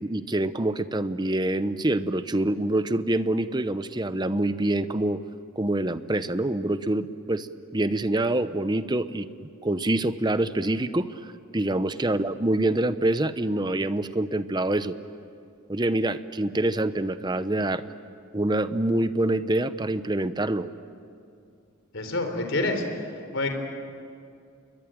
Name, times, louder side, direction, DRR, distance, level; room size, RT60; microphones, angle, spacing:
voice 1, 0.0-5.2 5.6-15.0 15.7-17.8 18.3-20.7, right 1 dB, 20° right, 12 dB, 0.8 m, -26 dB
voice 2, 21.9-22.8 23.3-23.5, left 2 dB, 65° left, 5 dB, 4.0 m, -27 dB
28.5 x 22.5 x 9.0 m, 2.4 s
head